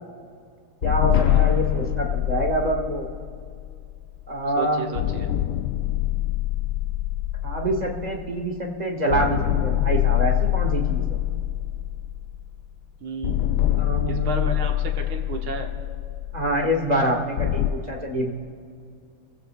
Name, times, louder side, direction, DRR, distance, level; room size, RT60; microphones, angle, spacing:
sound 1, 0.8-4.4 5.0-8.8 9.1-12.7 13.2-17.7, left 13 dB, 70° left, 1.0 m, -25 dB
voice 1, 0.8-3.0 4.3-4.8 7.4-11.2 13.8-14.5 16.3-18.3, right 1 dB, 25° right, 0 dB, 1.2 m, -26 dB
voice 2, 4.6-5.3 13.0-13.7 14.0-15.7, right 4 dB, 85° right, 2 dB, 2.2 m, -33 dB
29.5 x 15.5 x 2.2 m, 2.3 s
omnidirectional pair, 2.2 m